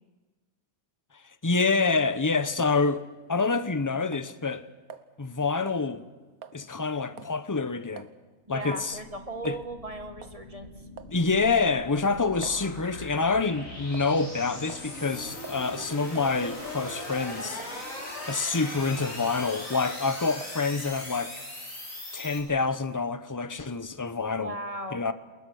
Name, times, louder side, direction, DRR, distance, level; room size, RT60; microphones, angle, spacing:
voice 1, 1.4-3.0 3.3-4.7 5.2-6.0 6.5-8.1 8.5-9.0 9.4-9.6 11.1-17.6 18.3-21.4 22.1-24.6 24.9-25.1, left 4 dB, 15° left, 0.7 m, -27 dB
sound 1, 2.7-2.9 3.4-3.8 4.1-4.3 4.9-5.1 5.7-5.9 6.4-6.6 7.2-7.4 8.0-8.1 8.7-8.9 9.4-9.6 10.2-10.4 11.0-11.2 11.7-12.6 13.2-13.4 13.9-14.3 14.7-14.9 15.4-15.6 16.1-16.3 16.9-17.3 17.6-17.8 18.3-18.5 18.9-19.2 19.7-19.9 20.4-20.6, right 7 dB, 85° right, 1.6 m, -46 dB
sound 2, 8.4-22.4, left 1 dB, 65° left, 5.7 m, -40 dB
voice 2, 8.5-10.9 24.4-25.0, right 2 dB, 25° right, 2.0 m, -37 dB
29.0 x 20.5 x 6.4 m
omnidirectional pair, 1.5 m